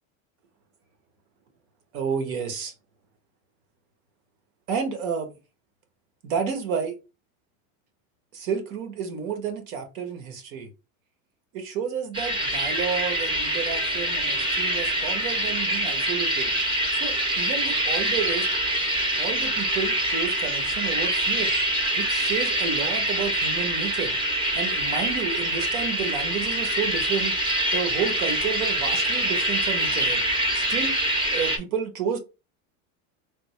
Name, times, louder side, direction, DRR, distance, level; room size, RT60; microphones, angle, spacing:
voice 1, 1.9-2.7 4.7-5.3 6.2-7.0 8.3-10.7 11.5-16.5 16.9-18.5 19.2-21.5 21.9-24.2 24.5-27.3 27.7-30.2 30.5-32.2, right 6 dB, 85° right, 1.1 m, -31 dB
sound 1, 12.1-31.6, right 1 dB, 10° right, 0.5 m, -25 dB
3.4 x 2.3 x 3.1 m
supercardioid pair, 145°, 40 cm